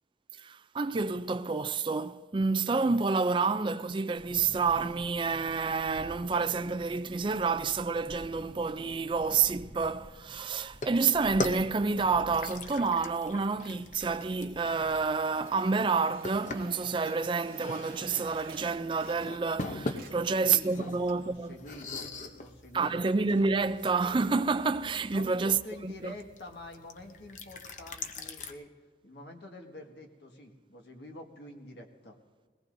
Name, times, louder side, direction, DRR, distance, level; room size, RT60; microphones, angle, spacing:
voice 1, 0.4-21.6 22.7-26.1, right 4 dB, 30° right, 0.4 m, -29 dB
sound 1, 4.1-15.1, equal, 10° left, 4.0 m, -50 dB
sound 2, 10.7-28.5, left 2 dB, 45° left, 0.8 m, -42 dB
sound 3, 14.6-19.6 19.8-21.4, right 4 dB, 55° right, 1.5 m, -51 dB
voice 2, 20.1-22.1 22.4-23.1 25.1-28.7 29.0-32.2, left 1 dB, 70° left, 1.8 m, -47 dB
22.0 x 18.0 x 2.7 m
head